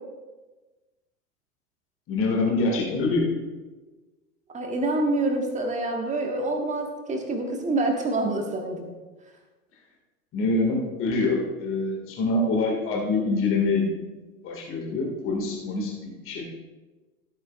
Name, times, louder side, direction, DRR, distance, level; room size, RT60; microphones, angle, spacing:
voice 1, 2.1-3.3 10.3-13.9 14.4-16.5, left 3 dB, 30° left, 0 dB, 2.0 m, -25 dB
voice 2, 4.5-8.9, right 2 dB, 15° right, 3 dB, 1.5 m, -26 dB
14.5 x 9.0 x 2.4 m, 1.2 s
figure-of-eight pair, 95°, 46 cm